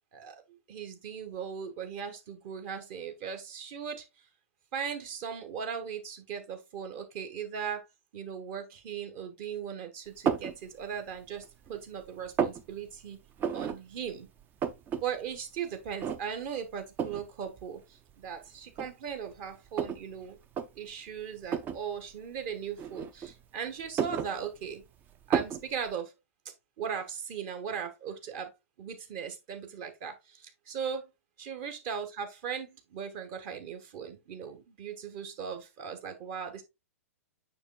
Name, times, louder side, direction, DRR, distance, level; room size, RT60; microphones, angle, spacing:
voice 1, 0.1-4.0 4.7-7.9 8.1-13.2 13.5-14.3 15.0-20.4 20.7-24.8 25.3-26.1 26.8-28.5 28.8-31.0 31.4-36.6, right 7 dB, 40° right, 1.4 m, -38 dB
sound 1, 10.3-10.6 11.1-11.8 12.0-12.6 13.4-13.8 14.1-14.2 14.4-15.0 15.4-15.5 16.0-16.5 17.0-17.3 18.1-18.2 18.7-20.0 20.4-20.7 21.5-21.8 22.8-23.4 23.8-24.8 25.3-25.6, right 7 dB, 25° right, 0.5 m, -31 dB
7.0 x 6.0 x 2.3 m
figure-of-eight pair, 105°, 8 cm